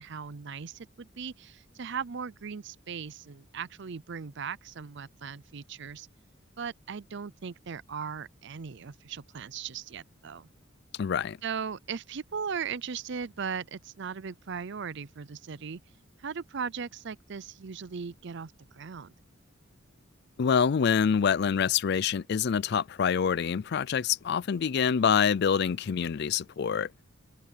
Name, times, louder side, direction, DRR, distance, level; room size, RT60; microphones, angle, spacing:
voice 1, 0.0-6.1 6.6-10.5 11.4-15.8 16.2-19.1, right 6 dB, 65° right, 0.6 m, -38 dB
voice 2, 11.0-11.4 20.4-26.9, left 7 dB, 55° left, 0.4 m, -26 dB
open air
head